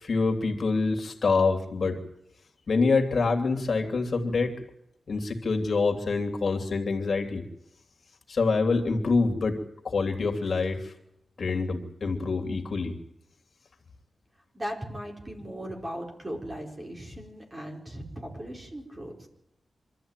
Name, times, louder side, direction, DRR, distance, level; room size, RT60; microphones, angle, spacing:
voice 1, 0.0-2.0 2.7-4.6 5.1-7.4 8.3-9.6 9.8-10.9 11.4-13.0, left 4 dB, 55° left, 4 dB, 3.0 m, -26 dB
voice 2, 14.5-19.3, equal, 20° right, 1 dB, 4.9 m, -38 dB
25.5 x 13.5 x 9.1 m, 0.80 s
wide cardioid pair, 125°, 0 cm